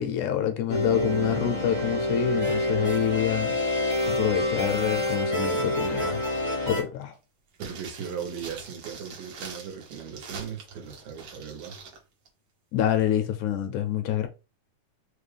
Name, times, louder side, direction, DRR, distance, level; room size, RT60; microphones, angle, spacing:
voice 1, 0.0-3.5 4.1-6.4 6.7-7.1 12.7-14.3, left 10 dB, 80° left, 1.8 m, -27 dB
sound 1, 0.7-6.8, left 1 dB, 40° right, 0.5 m, -27 dB
sound 2, 7.5-12.0 12.3-12.4, right 5 dB, 65° right, 1.4 m, -43 dB
voice 2, 7.6-11.7, right 7 dB, 90° right, 2.6 m, -38 dB
5.3 x 2.2 x 3.3 m
omnidirectional pair, 3.7 m